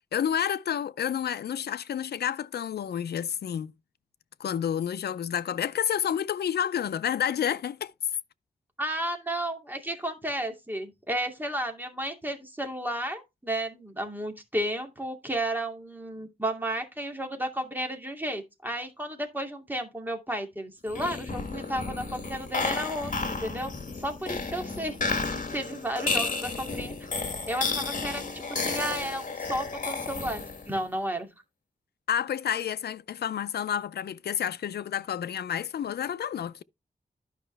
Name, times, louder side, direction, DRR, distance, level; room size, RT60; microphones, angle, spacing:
voice 1, 0.1-3.7 4.4-7.9 32.1-36.6, left 9 dB, 90° left, 0.4 m, -29 dB
voice 2, 8.8-23.7 24.0-25.0 25.3-26.9 27.5-31.3, right 1 dB, 10° right, 2.4 m, -33 dB
sound 1, 20.9-30.8, left 3 dB, 55° left, 2.0 m, -32 dB
12.0 x 5.4 x 3.3 m
wide cardioid pair, 95°, 16 cm